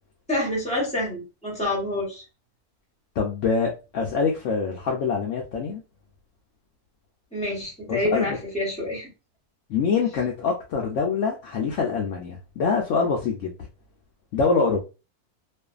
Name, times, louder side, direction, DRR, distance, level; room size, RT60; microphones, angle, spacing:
voice 1, 0.3-2.2 7.3-9.1, left 1 dB, 5° left, -3 dB, 0.8 m, -27 dB
voice 2, 3.2-5.8 7.9-8.4 9.7-13.5 14.3-14.8, left 5 dB, 70° left, 0 dB, 0.8 m, -25 dB
2.6 x 2.4 x 2.3 m, 0.30 s
omnidirectional pair, 1.6 m